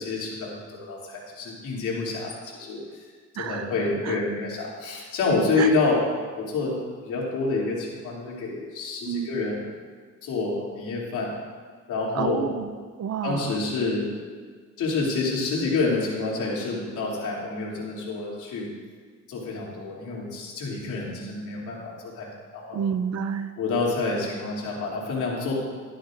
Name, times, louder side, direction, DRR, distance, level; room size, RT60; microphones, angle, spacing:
voice 1, 0.0-3.0 3.4-6.0 6.3-6.8 7.0-9.6 10.2-11.3 11.9-12.4 13.2-14.1 14.8-18.7 19.3-22.3 22.5-22.8 23.6-25.5, left 3 dB, 85° left, -4 dB, 3.0 m, -28 dB
voice 2, 3.4-3.7 4.0-4.2 5.6-5.7 9.1-9.3 12.1-13.6 22.7-23.5, right 7 dB, 55° right, 9 dB, 0.7 m, -29 dB
13.0 x 11.5 x 2.6 m, 1.5 s
cardioid pair, 90°, 30 cm